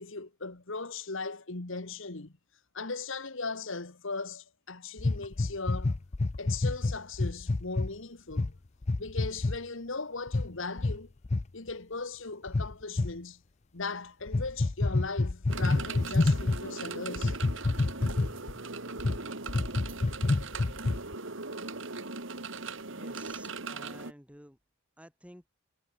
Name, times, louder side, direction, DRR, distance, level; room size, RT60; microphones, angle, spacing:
voice 1, 0.0-2.3 2.7-6.0 6.4-8.6 9.0-11.1 11.5-13.4 13.7-17.4, left 3 dB, 60° left, 1.5 m, -38 dB
sound 1, 5.0-7.9 8.3-8.5 8.8-9.6 10.3-10.5 10.8-11.0 11.2-11.4 12.5-13.1 14.3-16.6 17.2-18.5 19.0-19.2 19.5-21.1, left 2 dB, 30° left, 0.5 m, -28 dB
sound 2, 15.5-24.1, right 3 dB, 55° right, 1.9 m, -39 dB
voice 2, 22.9-24.6 25.0-25.4, equal, 5° right, 4.3 m, -52 dB
head